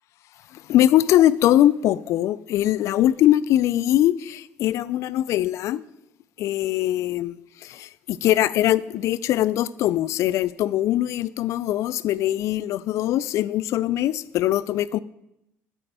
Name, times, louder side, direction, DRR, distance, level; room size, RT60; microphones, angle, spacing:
voice 1, 0.7-5.8 6.4-7.3 8.1-15.0, left 13 dB, 60° left, 0.3 m, -21 dB
8.6 x 4.5 x 6.7 m
supercardioid pair, 105°, 6 cm